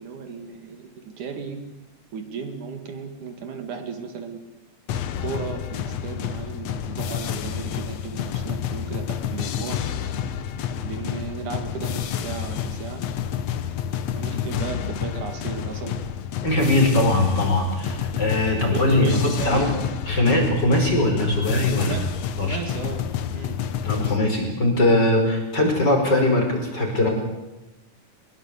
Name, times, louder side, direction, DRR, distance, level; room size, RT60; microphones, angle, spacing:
voice 1, 0.0-1.6 2.1-4.4 5.2-9.8 10.8-13.0 14.1-16.0 16.7-16.9 17.6-17.8 18.5-19.8 21.8-23.6 24.0-24.1, right 5 dB, 70° right, 6 dB, 3.5 m, -35 dB
sound 1, 4.9-24.2, left 9 dB, 65° left, 2.0 m, -29 dB
voice 2, 16.4-19.6 20.1-21.9 22.4-22.6 23.8-27.1, left 1 dB, 30° left, 2 dB, 5.8 m, -21 dB
23.0 x 21.0 x 8.3 m, 0.99 s
omnidirectional pair, 3.7 m